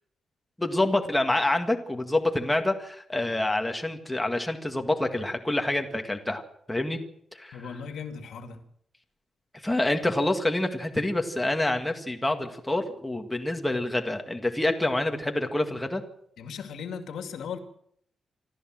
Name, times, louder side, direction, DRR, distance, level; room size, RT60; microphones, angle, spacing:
voice 1, 0.6-6.4 6.7-7.0 7.3-7.8 9.6-16.0, left 1 dB, 5° left, 4 dB, 1.9 m, -27 dB
voice 2, 7.5-8.6 16.4-17.6, left 6 dB, 80° left, 7 dB, 2.3 m, -37 dB
26.5 x 13.0 x 7.6 m, 0.70 s
wide cardioid pair, 155°, 0 cm